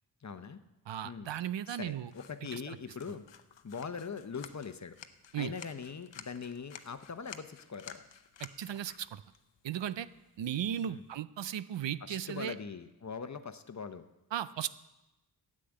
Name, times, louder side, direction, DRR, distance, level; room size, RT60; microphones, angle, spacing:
voice 1, 0.2-0.6 1.0-1.3 1.7-3.3 3.6-5.0 5.3-8.0 10.9-11.0 12.0-14.1, left 5 dB, 40° left, 10 dB, 0.8 m, -42 dB
voice 2, 0.9-2.1 2.5-2.6 5.3-5.5 8.6-9.2 9.6-10.1 10.4-12.5 14.3-14.7, right 10 dB, 90° right, 15 dB, 0.6 m, -36 dB
sound 1, 2.1-11.2, left 8 dB, 85° left, 0.8 m, -53 dB
10.0 x 7.6 x 8.7 m, 0.98 s
wide cardioid pair, 75°, 42 cm